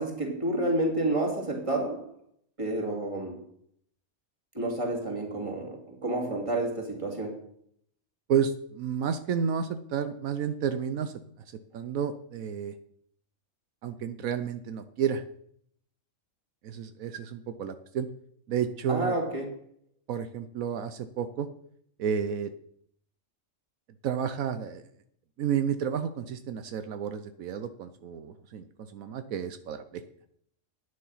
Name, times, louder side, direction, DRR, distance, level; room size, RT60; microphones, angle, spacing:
voice 1, 0.0-2.1 2.6-3.4 4.5-7.4 18.9-19.5, right 2 dB, 20° right, 0 dB, 2.9 m, -30 dB
voice 2, 8.3-11.1 11.7-12.7 13.8-15.2 16.6-18.1 18.5-19.2 20.1-21.5 22.0-22.5 24.0-24.9 25.4-28.6 28.9-30.0, right 8 dB, 80° right, 10 dB, 1.2 m, -31 dB
11.0 x 9.8 x 5.7 m, 0.67 s
omnidirectional pair, 1.4 m